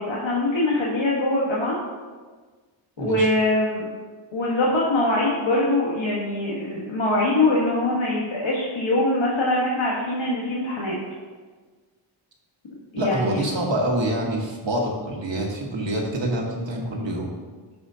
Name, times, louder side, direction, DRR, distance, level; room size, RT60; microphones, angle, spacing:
voice 1, 0.0-1.7 3.0-3.9 4.3-10.9 12.9-13.5, left 2 dB, 70° left, -5 dB, 1.4 m, -23 dB
voice 2, 3.0-3.3 13.0-17.3, right 1 dB, 65° right, -1 dB, 1.6 m, -26 dB
13.5 x 5.0 x 2.7 m, 1.4 s
wide cardioid pair, 110°, 48 cm